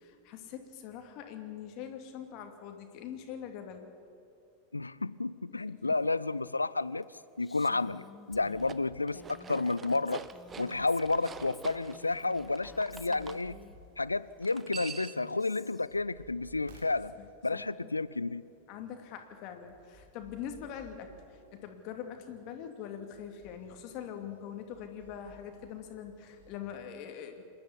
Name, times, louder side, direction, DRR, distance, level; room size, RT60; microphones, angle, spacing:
voice 1, 0.0-3.9 5.5-5.9 17.2-17.6 18.7-27.4, left 8 dB, 40° left, 5 dB, 2.6 m, -43 dB
voice 2, 4.7-7.1 7.4-9.2 9.5-10.3 10.6-13.6 14.0-17.1 17.4-18.4, left 3 dB, 80° left, 18 dB, 0.5 m, -31 dB
Female speech woman speaking, 7.4-13.8 14.6-16.0, left 4 dB, 15° left, 0.8 m, -54 dB
sound 1, 8.3-26.6, right 2 dB, 55° right, 3.1 m, -60 dB
sound 2, 8.5-13.4 14.4-15.3, right 6 dB, 20° right, 0.8 m, -46 dB
26.5 x 11.5 x 9.7 m, 2.6 s
figure-of-eight pair, 90°, 0 cm